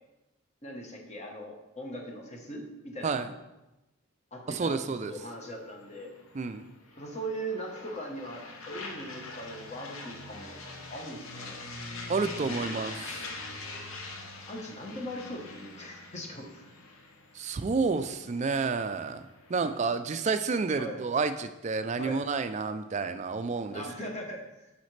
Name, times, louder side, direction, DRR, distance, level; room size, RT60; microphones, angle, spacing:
voice 1, 0.6-3.4 4.3-6.1 7.0-11.6 12.4-12.8 14.5-16.7 19.6-19.7 20.8-21.0 22.0-22.2 23.7-24.7, right 1 dB, 30° left, 1 dB, 1.0 m, -40 dB
voice 2, 4.5-5.2 6.3-6.7 12.1-13.1 17.3-19.2 19.5-23.8, right 4 dB, 30° right, 10 dB, 0.3 m, -30 dB
sound 1, 5.1-19.9, left 3 dB, 75° left, 1.0 m, -44 dB
8.2 x 5.8 x 3.2 m, 0.98 s
head